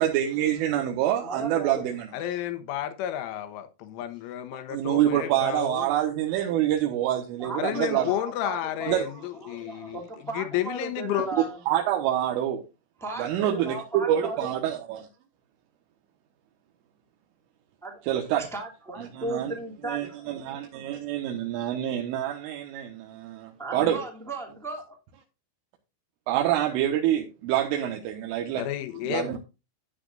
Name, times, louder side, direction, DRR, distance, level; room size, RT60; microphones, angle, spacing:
voice 1, 0.0-2.1 4.5-8.1 8.9-9.1 11.7-12.6 13.2-15.1 18.1-18.5 19.0-19.6 19.9-24.0 26.3-28.7 29.1-29.4, right 11 dB, 85° right, 3.7 m, -26 dB
voice 2, 1.2-1.9 7.4-11.6 13.0-14.6 17.8-18.0 18.4-20.4 23.6-25.0, right 2 dB, ahead, 0.6 m, -36 dB
voice 3, 2.1-5.9 7.6-11.3 28.6-29.4, left 12 dB, 80° left, 3.6 m, -31 dB
13.0 x 9.6 x 2.5 m
omnidirectional pair, 5.7 m